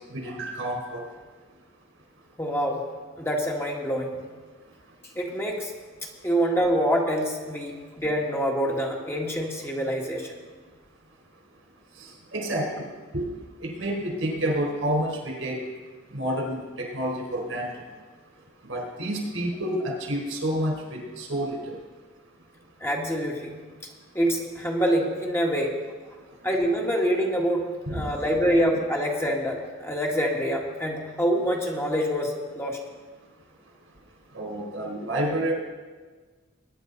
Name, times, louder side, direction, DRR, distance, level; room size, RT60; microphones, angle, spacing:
voice 1, 0.1-1.0 12.0-12.9 13.1-13.3 13.6-15.6 16.1-17.7 18.7-21.6 27.9-28.0 34.3-35.5, right 1 dB, 90° right, 0 dB, 4.2 m, -29 dB
voice 2, 2.4-2.8 3.2-4.1 5.1-5.7 6.2-10.3 22.8-23.5 24.1-25.7 26.4-32.8, equal, 15° left, -1 dB, 1.6 m, -26 dB
20.5 x 10.0 x 4.0 m, 1.4 s
head